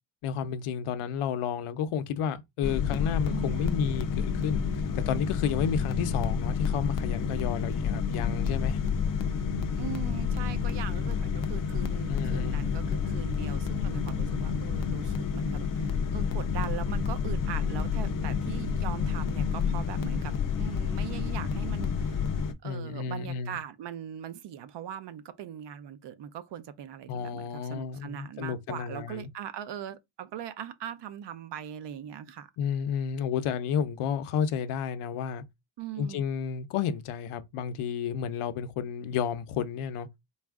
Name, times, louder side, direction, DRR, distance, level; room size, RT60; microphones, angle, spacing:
voice 1, 0.2-4.6 4.9-8.8 12.1-12.6 22.6-23.6 27.1-29.3 32.6-35.4 36.0-40.1, left 7 dB, 85° left, 0.7 m, -31 dB
sound 1, 2.6-22.5, left 6 dB, 45° left, 0.4 m, -29 dB
voice 2, 3.3-3.7 9.8-22.3 22.6-32.5 35.8-36.2, right 10 dB, 60° right, 0.6 m, -40 dB
4.1 x 2.4 x 3.5 m
wide cardioid pair, 175°, 49 cm